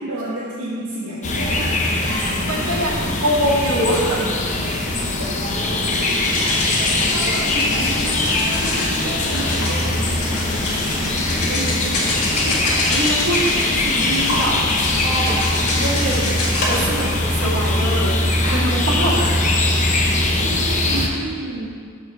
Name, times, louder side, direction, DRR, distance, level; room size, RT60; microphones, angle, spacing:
voice 1, 0.0-1.7 5.4-12.0 20.3-21.7, right 1 dB, 90° right, -8 dB, 1.3 m, -31 dB
sound 1, 1.2-21.1, left 2 dB, 35° left, 0.7 m, -21 dB
voice 2, 2.0-4.4 11.0-11.1 11.4-11.7 12.4-14.5 14.9-16.3 16.6-18.1 18.4-19.2, right 1 dB, 70° right, -7 dB, 2.2 m, -24 dB
sound 2, 5.8-16.8, left 2 dB, 90° left, 1.6 m, -27 dB
sound 3, 9.3-17.7 18.2-18.8, left 1 dB, 60° left, 2.0 m, -32 dB
6.3 x 5.1 x 6.2 m, 2.1 s
head